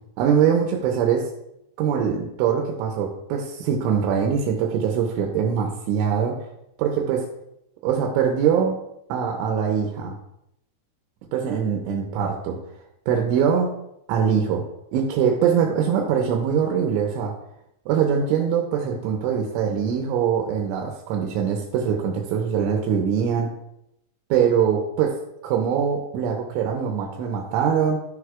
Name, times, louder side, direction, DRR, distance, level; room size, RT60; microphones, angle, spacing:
voice 1, 0.2-1.3 1.8-6.5 6.8-7.3 7.8-8.8 9.1-10.2 11.3-12.6 13.1-13.7 14.1-14.6 14.9-17.3 17.9-23.5 24.3-25.2 25.4-28.1, right 7 dB, 80° right, 1 dB, 3.1 m, -22 dB
14.0 x 6.4 x 2.3 m, 0.82 s
omnidirectional pair, 5.7 m